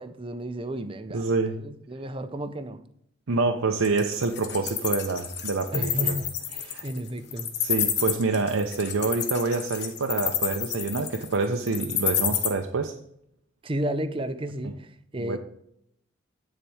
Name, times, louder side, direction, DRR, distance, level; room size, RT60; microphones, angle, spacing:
voice 1, 0.0-2.8 5.7-7.5 13.6-15.4, right 1 dB, 25° right, 11 dB, 0.5 m, -33 dB
voice 2, 1.1-1.6 3.3-6.2 6.7-6.8 7.6-12.9 15.3-15.4, right 3 dB, 80° right, 4 dB, 0.7 m, -27 dB
Wild animals, 3.8-12.5, left 9 dB, 55° left, 1.1 m, -28 dB
10.0 x 4.1 x 4.8 m, 0.72 s
head